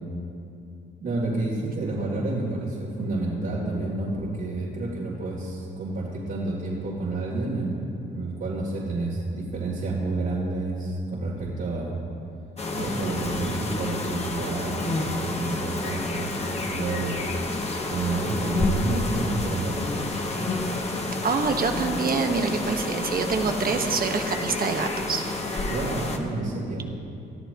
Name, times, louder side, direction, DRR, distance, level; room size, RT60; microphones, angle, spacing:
voice 1, 1.0-12.0 12.7-16.3 16.7-17.4 17.9-20.5 25.7-26.9, right 2 dB, 65° right, -8 dB, 3.5 m, -29 dB
sound 1, 12.6-26.2, left 2 dB, 30° left, 1.5 m, -29 dB
voice 2, 21.2-25.2, right 4 dB, 45° right, 4 dB, 1.4 m, -26 dB
22.0 x 13.5 x 3.1 m, 2.5 s
cardioid pair, 90°, 20 cm